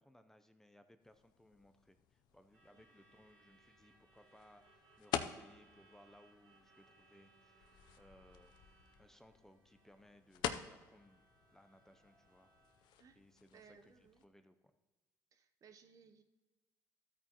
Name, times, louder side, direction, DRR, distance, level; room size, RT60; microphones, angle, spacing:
voice 1, 0.0-8.5 9.0-11.2 11.5-12.5 13.1-14.5, left 1 dB, 5° left, 9 dB, 0.6 m, -65 dB
sound 1, 1.0-14.3, left 10 dB, 75° left, 0.6 m, -48 dB
Truck / Alarm, 2.3-14.2, right 2 dB, 75° right, 3.5 m, -70 dB
voice 2, 13.5-14.3 15.3-16.2, right 6 dB, 50° right, 8 dB, 0.8 m, -62 dB
13.0 x 8.8 x 3.0 m, 1.2 s
cardioid pair, 100°, 8 cm